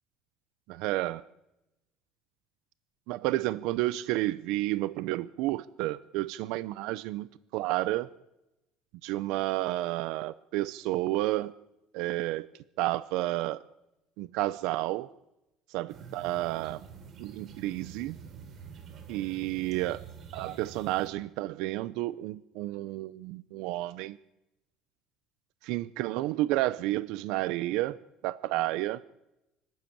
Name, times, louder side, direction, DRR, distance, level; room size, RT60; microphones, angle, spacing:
voice 1, 0.7-1.2 3.1-8.1 9.0-11.5 11.9-12.5 12.8-13.6 14.2-15.1 15.7-16.8 17.2-18.2 19.1-20.0 20.3-24.2 25.6-28.0 28.2-29.0, right 17 dB, 80° right, 16 dB, 0.6 m, -31 dB
sound 1, 15.9-21.1, right 6 dB, 50° right, 3.7 m, -47 dB
25.0 x 12.5 x 8.8 m, 0.92 s
cardioid pair, 135°, 0 cm